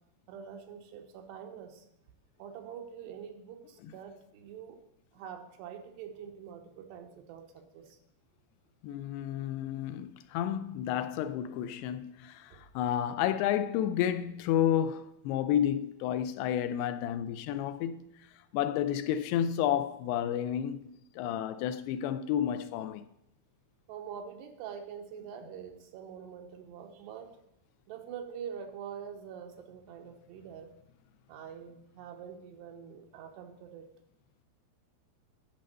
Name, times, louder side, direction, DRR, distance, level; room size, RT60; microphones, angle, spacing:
voice 1, 0.3-1.9 2.4-4.8 5.1-8.0 12.5-12.6 23.9-27.4 27.9-30.7 31.3-33.8, right 8 dB, 90° right, 3.2 m, -45 dB
voice 2, 8.8-23.0, left 10 dB, 80° left, 2.6 m, -31 dB
10.5 x 5.3 x 7.6 m
omnidirectional pair, 4.8 m